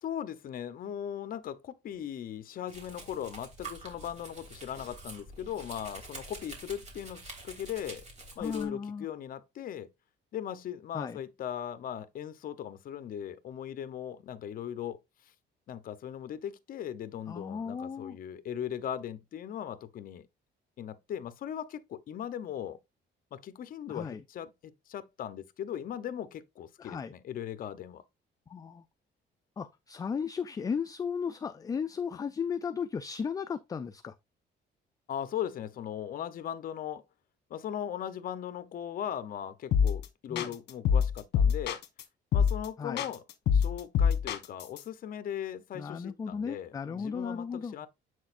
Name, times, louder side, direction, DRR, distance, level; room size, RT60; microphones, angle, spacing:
voice 1, 0.0-8.0 8.4-9.9 10.3-15.0 15.7-20.3 20.8-22.8 23.3-28.0 35.1-37.0 37.5-41.8 42.3-43.2 43.5-47.9, left 10 dB, 50° left, 0.7 m, -38 dB
Domestic sounds home sounds, 2.7-8.6, right 2 dB, 35° right, 2.8 m, -47 dB
voice 2, 8.4-9.1 10.9-11.2 17.3-18.2 23.9-24.2 26.8-27.1 28.5-28.8 29.6-34.1 40.3-40.5 42.8-43.0 45.7-47.9, left 6 dB, 20° left, 0.3 m, -35 dB
sound 1, 39.7-40.1 40.4-42.0 42.3-42.7 43.0-44.8, left 7 dB, 65° left, 1.2 m, -25 dB
7.8 x 6.3 x 2.5 m
cardioid pair, 160°, 19 cm